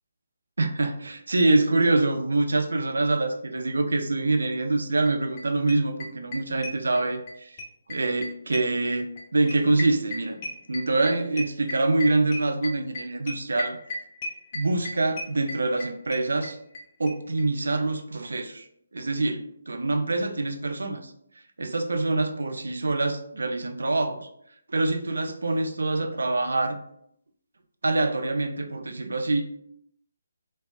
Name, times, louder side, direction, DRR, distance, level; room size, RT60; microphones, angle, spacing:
voice 1, 0.6-7.6 7.9-10.4 10.7-13.8 14.5-16.6 17.0-18.7 18.9-21.1 21.6-24.3 24.7-26.8 27.8-29.4, right 2 dB, 75° right, 5 dB, 0.3 m, -25 dB
sound 1, 5.0-5.1 5.4-5.5 5.7-7.3 7.6-16.8 17.1-17.2 17.4-17.5 17.7-17.8, left 1 dB, 35° left, 0.6 m, -35 dB
2.6 x 2.2 x 2.3 m, 0.72 s
figure-of-eight pair, 145°, 0 cm